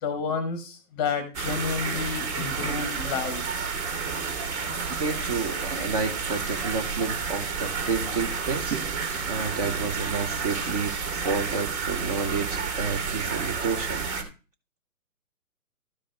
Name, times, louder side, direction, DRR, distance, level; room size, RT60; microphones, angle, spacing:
voice 1, 0.0-3.7, left 5 dB, 15° left, 10 dB, 0.9 m, -30 dB
sound 1, 1.3-14.2, right 5 dB, 50° right, 2.1 m, -30 dB
voice 2, 5.0-8.8 9.3-14.0, right 4 dB, 25° right, 7 dB, 0.8 m, -30 dB
sound 2, 8.7-9.2 11.8-13.1 13.6-13.8, right 8 dB, 75° right, 1.2 m, -40 dB
12.5 x 4.9 x 3.9 m, 0.33 s
hypercardioid pair, 145°, 44 cm